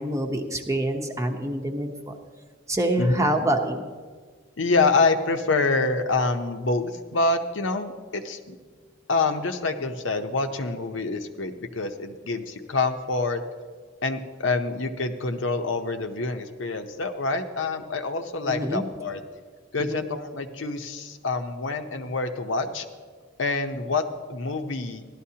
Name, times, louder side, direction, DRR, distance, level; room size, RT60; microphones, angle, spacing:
voice 1, 0.0-2.1 2.7-3.9 18.5-18.8 19.8-20.0, right 1 dB, 15° right, 3 dB, 0.9 m, -26 dB
voice 2, 3.0-3.3 4.6-8.6 9.1-13.4 14.0-19.2 19.7-22.9 23.4-24.0 24.3-25.1, left 3 dB, 75° left, 6 dB, 0.8 m, -26 dB
15.5 x 12.0 x 2.8 m, 1.5 s
head